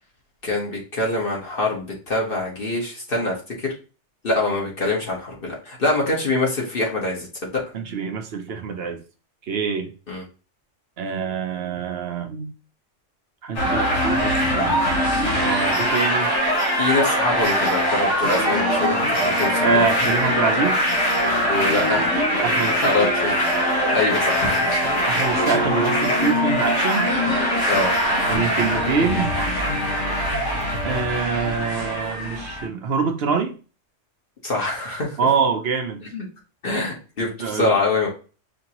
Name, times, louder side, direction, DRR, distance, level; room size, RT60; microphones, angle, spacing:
voice 1, 0.4-3.7 4.2-7.3 7.5-7.6 10.1-10.2 16.8-19.9 21.5-22.1 22.8-23.3 23.9-24.9 27.7-27.9 34.4-35.2 36.1-36.3 36.6-38.1, left 2 dB, 45° left, 1.4 m, -24 dB
voice 2, 7.7-9.0 9.5-9.9 11.0-12.5 13.4-15.0 15.3-16.3 19.6-20.8 22.4-23.1 25.1-27.1 28.3-29.3 30.8-33.5 35.2-36.0 37.4-37.7, right 5 dB, 60° right, 0.9 m, -25 dB
sound 1, 13.6-32.7, equal, 65° left, 1.6 m, -22 dB
5.2 x 2.9 x 2.9 m
omnidirectional pair, 1.3 m